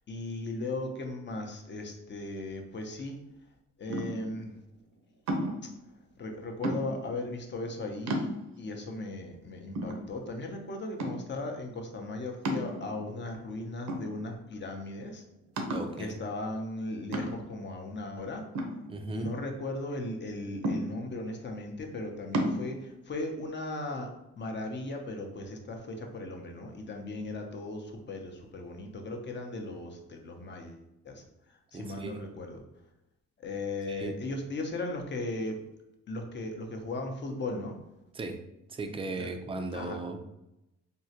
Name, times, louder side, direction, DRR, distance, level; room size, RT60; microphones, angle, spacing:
voice 1, 0.1-3.2 3.8-4.6 6.2-15.2 16.0-18.4 19.1-24.1 24.4-31.2 31.5-32.6 33.4-35.6 36.1-37.7 39.2-39.3 39.7-40.0, left 2 dB, 35° left, 3 dB, 0.6 m, -37 dB
sound 1, 3.9-4.4 5.3-5.7 6.6-7.1 7.7-7.8 8.1-8.7 9.3-9.4 9.8-10.5 11.0-11.4 12.5-13.2 13.9-14.5 14.9-15.0 15.6-16.0 17.1-17.6 18.6-19.5 20.6-21.2 22.3-22.6, right 1 dB, 65° right, 0.6 m, -33 dB
voice 2, 15.7-16.2 18.9-19.3 31.7-32.2 33.9-34.1 38.1-38.4 38.7-40.2, right 3 dB, 20° right, 6 dB, 0.3 m, -37 dB
3.6 x 2.1 x 2.7 m, 0.89 s
cardioid pair, 90°, 30 cm